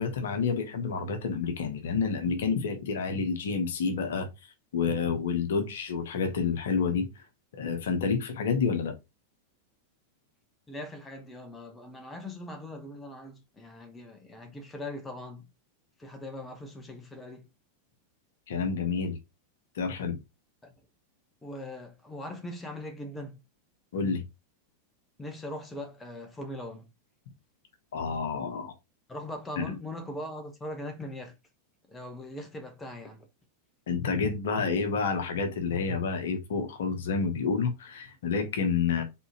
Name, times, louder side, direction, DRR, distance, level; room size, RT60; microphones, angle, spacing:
voice 1, 0.0-4.3 4.7-7.1 7.6-8.9 18.5-19.2 19.8-20.2 23.9-24.2 27.9-28.7 29.6-29.7 33.9-39.0, left 5 dB, 60° left, 1.1 m, -29 dB
voice 2, 10.7-15.5 16.0-17.5 20.6-20.7 21.4-23.4 25.2-26.9 29.1-31.4 31.9-33.3, left 1 dB, 10° left, 1.1 m, -40 dB
4.0 x 3.9 x 2.9 m
figure-of-eight pair, 90°, 0 cm